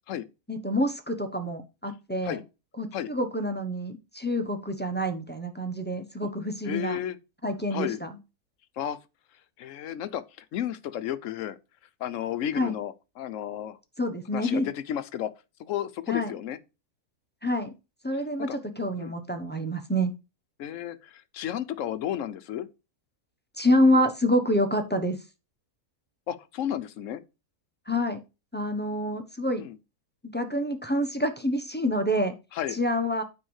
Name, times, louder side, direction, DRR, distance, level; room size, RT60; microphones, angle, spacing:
voice 1, 0.5-2.4 2.8-7.0 7.4-8.1 12.5-12.8 14.0-14.7 16.1-16.3 17.4-17.7 18.0-20.1 23.6-25.2 27.9-28.2 28.5-29.7 30.2-32.4 32.7-33.2, equal, 10° left, 0.7 m, -27 dB
voice 2, 6.6-7.2 7.7-8.0 8.8-9.0 9.6-10.2 10.5-11.6 12.0-13.8 14.3-15.3 15.6-16.6 18.5-18.6 19.0-19.1 20.6-22.7 26.3-27.2 29.6-29.8 32.5-32.8, left 11 dB, 60° left, 0.9 m, -32 dB
9.2 x 3.5 x 6.4 m
omnidirectional pair, 1.7 m